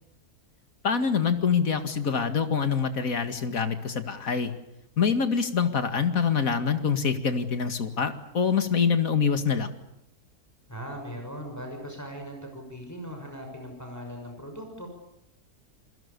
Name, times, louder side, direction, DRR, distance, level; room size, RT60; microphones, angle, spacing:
voice 1, 0.8-4.5 5.0-9.7, left 6 dB, 60° left, 9 dB, 2.5 m, -25 dB
voice 2, 10.7-14.9, equal, 10° left, 3 dB, 6.3 m, -39 dB
29.0 x 21.5 x 7.0 m, 0.85 s
omnidirectional pair, 1.6 m